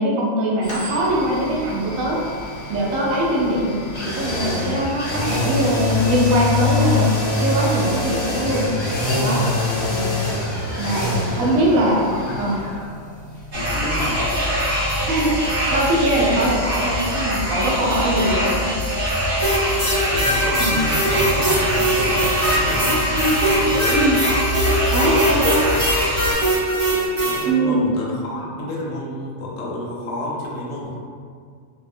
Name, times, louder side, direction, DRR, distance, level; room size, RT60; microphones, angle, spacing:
voice 1, 0.0-2.2 2.7-3.8 4.0-7.1 7.4-8.6 9.2-9.4 9.9-10.1 10.8-12.1 12.4-12.6 15.1-18.7 20.6-20.7 23.9-24.2 24.9-25.6 27.5-27.8, right 1 dB, 75° right, -4 dB, 1.0 m, -21 dB
sound 1, 0.6-16.4 16.7-16.8, left 3 dB, 45° left, 0.5 m, -26 dB
voice 2, 9.6-9.9 11.1-11.6 12.2-12.4 13.5-14.4 18.1-18.3 20.1-23.0 23.4-24.0 25.0-25.8 27.2-31.0, left 1 dB, 70° left, -4 dB, 0.9 m, -30 dB
Forest near Calakmul Campeche Mexico, 13.5-26.3, equal, 50° right, 0.9 m, -23 dB
MS Gate high, 19.4-27.4, right 1 dB, 25° right, 0.9 m, -21 dB
2.7 x 2.1 x 2.5 m, 2.1 s
omnidirectional pair, 1.4 m